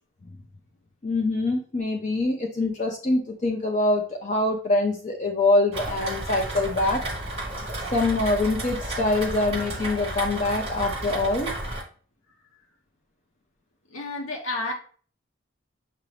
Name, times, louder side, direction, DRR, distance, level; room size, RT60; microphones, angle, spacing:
voice 1, 1.0-7.0 7.9-11.6, left 2 dB, 35° left, 0.5 m, -24 dB
Rain, 5.7-11.8, right 1 dB, 30° right, 1.2 m, -32 dB
voice 2, 13.9-14.7, left 2 dB, 75° left, 1.0 m, -30 dB
6.6 x 2.5 x 3.3 m
head